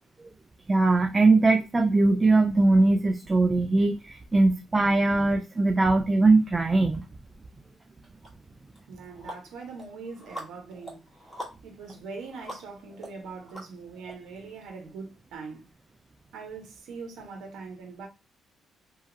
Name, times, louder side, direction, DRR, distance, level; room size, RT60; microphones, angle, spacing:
voice 1, 0.7-7.0, right 2 dB, 25° right, 0.3 m, -21 dB
sound 1, 8.2-8.3 8.7-14.1, equal, ahead, 1.1 m, -44 dB
voice 2, 8.9-11.0 11.6-15.6 16.3-18.1, right 4 dB, 85° right, 0.9 m, -42 dB
2.8 x 2.3 x 2.6 m
cardioid pair, 90°, 0 cm